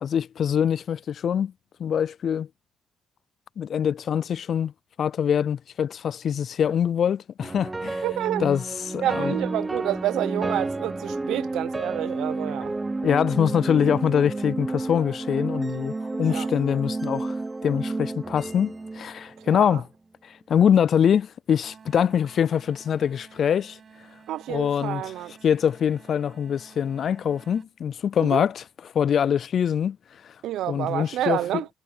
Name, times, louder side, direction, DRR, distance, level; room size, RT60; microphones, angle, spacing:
voice 1, 0.0-1.5 1.8-2.5 3.6-4.7 5.0-8.0 8.4-9.3 13.0-17.3 17.6-19.8 20.5-23.8 24.5-25.1 25.4-28.6 28.9-30.0 30.7-31.4, left 8 dB, 60° left, 0.4 m, -24 dB
sound 1, 7.4-19.7, right 2 dB, 20° right, 0.9 m, -31 dB
voice 2, 8.0-8.4 9.0-12.8 16.3-16.5 19.5-19.8 24.3-25.4 28.2-28.4 30.4-31.7, right 13 dB, 85° right, 0.7 m, -29 dB
sound 2, 21.6-27.7, right 6 dB, 45° right, 5.8 m, -51 dB
cardioid pair, 90°, 0 cm